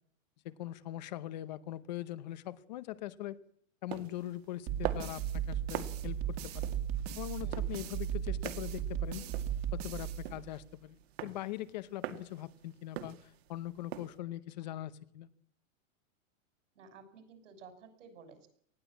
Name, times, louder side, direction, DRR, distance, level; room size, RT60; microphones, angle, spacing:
voice 1, 0.4-3.4 3.8-6.7 7.2-9.2 9.7-15.3, left 14 dB, 35° left, 15 dB, 0.9 m, -41 dB
sound 1, 3.9-14.2, right 11 dB, 55° right, 2.1 m, -45 dB
sound 2, 4.7-10.8, right 10 dB, 30° right, 2.0 m, -36 dB
voice 2, 16.7-18.5, right 5 dB, 70° right, 9 dB, 6.5 m, -54 dB
19.5 x 15.5 x 8.5 m, 0.62 s
supercardioid pair, 175°, 38 cm